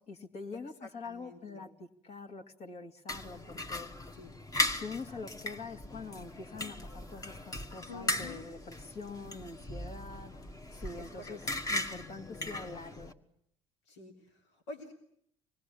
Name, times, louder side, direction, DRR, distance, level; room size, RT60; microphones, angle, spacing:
voice 1, 0.0-3.9 4.7-10.3 10.8-11.4 11.7-13.1, left 4 dB, 50° left, 3 dB, 2.6 m, -45 dB
voice 2, 0.8-1.7 4.1-4.3 7.9-8.4 11.0-11.4 13.9-14.9, left 2 dB, 80° left, 1 dB, 3.3 m, -48 dB
sound 1, 3.1-13.1, left 2 dB, 25° left, 1.9 m, -38 dB
26.0 x 19.5 x 8.5 m, 0.68 s
hypercardioid pair, 65°, 14 cm